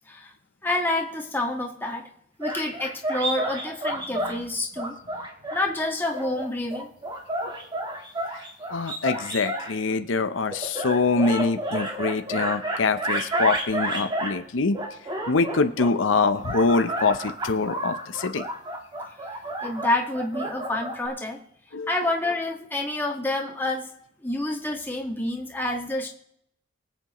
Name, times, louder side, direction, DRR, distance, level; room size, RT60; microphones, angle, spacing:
voice 1, 0.6-2.1 2.4-4.9 5.5-6.9 19.6-21.4 21.9-23.9 24.2-26.1, left 2 dB, 10° left, 0 dB, 1.6 m, -28 dB
sound 1, 2.4-4.4 4.8-5.7 6.1-9.8 10.5-14.4 14.7-15.9 16.4-21.1, right 1 dB, 25° right, 1.5 m, -31 dB
voice 2, 4.1-4.4 8.7-14.8 15.3-18.4 21.7-22.1, left 4 dB, 80° left, 9 dB, 0.7 m, -24 dB
24.0 x 8.1 x 3.0 m, 0.72 s
head